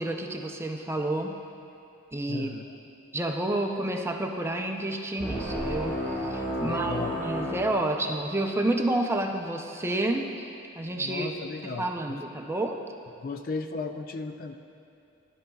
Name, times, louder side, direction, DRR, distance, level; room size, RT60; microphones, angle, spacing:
voice 1, 0.0-1.4 2.1-2.5 3.1-10.3 10.8-11.3 11.8-12.8, right 1 dB, 10° right, 3 dB, 0.5 m, -29 dB
voice 2, 2.3-2.6 6.6-7.2 10.9-12.2 13.2-14.6, left 4 dB, 45° left, 6 dB, 0.4 m, -35 dB
sound 1, 5.2-8.5, equal, 10° left, 1.7 m, -32 dB
16.5 x 11.0 x 2.3 m, 2.6 s
head